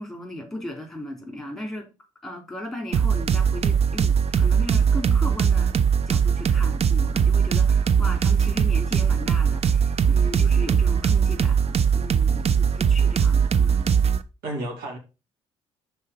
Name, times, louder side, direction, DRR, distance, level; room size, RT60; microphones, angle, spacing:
voice 1, 0.0-1.9 2.2-13.9, left 1 dB, ahead, 3.0 m, -37 dB
sound 1, 2.9-14.2, right 7 dB, 40° right, 0.6 m, -20 dB
voice 2, 12.3-12.7 14.4-15.0, right 1 dB, 65° right, 2.3 m, -33 dB
5.6 x 4.4 x 5.0 m
hypercardioid pair, 50°, 17 cm